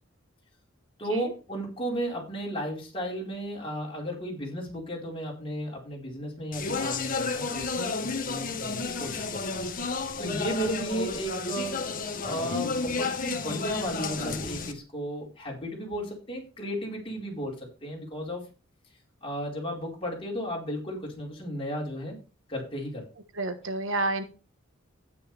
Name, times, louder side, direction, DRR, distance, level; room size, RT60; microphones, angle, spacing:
voice 1, 1.0-9.6 10.2-11.8 12.2-18.4 19.2-22.2 22.5-23.1, equal, 25° left, -2 dB, 4.6 m, -34 dB
Speech, 6.5-14.7, left 4 dB, 45° left, 1.5 m, -32 dB
voice 2, 23.3-24.2, right 2 dB, 65° right, 9 dB, 1.4 m, -29 dB
12.0 x 10.0 x 3.5 m, 0.33 s
head